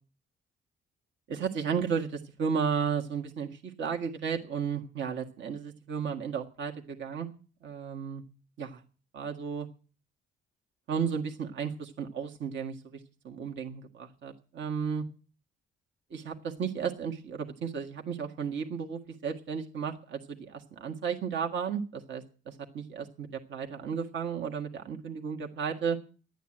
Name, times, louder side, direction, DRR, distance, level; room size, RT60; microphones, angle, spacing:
voice 1, 1.3-7.3 7.6-8.2 8.6-8.8 9.1-9.7 10.9-13.0 13.2-15.1 16.1-26.0, right 6 dB, 70° right, 3 dB, 1.7 m, -34 dB
12.0 x 9.2 x 8.9 m, 0.38 s
cardioid pair, 90°, 20 cm